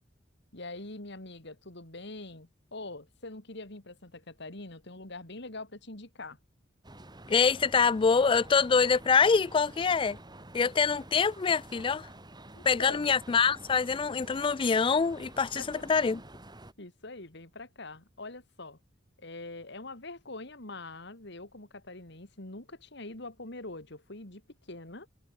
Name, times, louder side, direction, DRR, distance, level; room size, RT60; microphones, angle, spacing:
voice 1, 0.5-6.4 12.5-13.1 15.6-15.8 16.8-18.8 19.2-24.4 24.7-25.1, left 2 dB, 65° left, 3.6 m, -44 dB
sound 1, 6.8-16.7, right 1 dB, 20° right, 6.0 m, -49 dB
voice 2, 7.3-10.2 10.5-12.1 12.6-16.2, left 5 dB, 25° left, 0.4 m, -25 dB
head